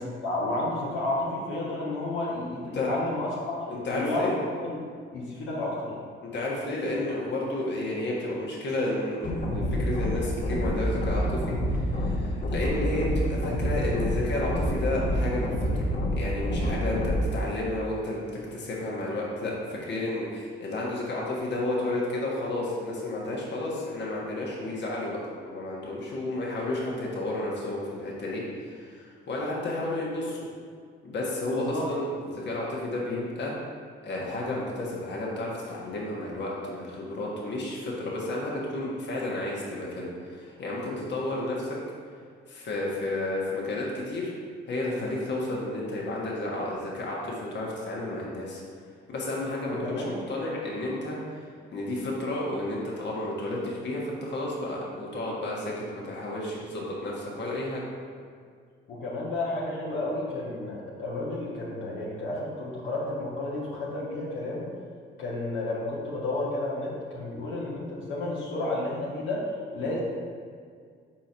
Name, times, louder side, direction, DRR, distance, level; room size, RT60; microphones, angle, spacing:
voice 1, 0.0-3.3 3.9-4.3 4.6-4.8 5.1-5.9 31.5-31.9 49.7-50.2 58.9-64.7 65.2-69.4 69.7-70.0, left 2 dB, 80° left, -5 dB, 1.3 m, -31 dB
voice 2, 3.7-4.3 6.2-11.2 11.7-15.9 16.2-25.2 25.5-30.4 31.0-33.5 34.0-41.8 42.5-44.3 44.7-48.6 49.1-51.4 51.7-57.8, left 2 dB, 60° left, -4 dB, 1.4 m, -31 dB
sound 1, 9.2-17.2, equal, 40° left, 1.0 m, -28 dB
4.5 x 4.5 x 5.4 m, 2.1 s
cardioid pair, 90°, 20 cm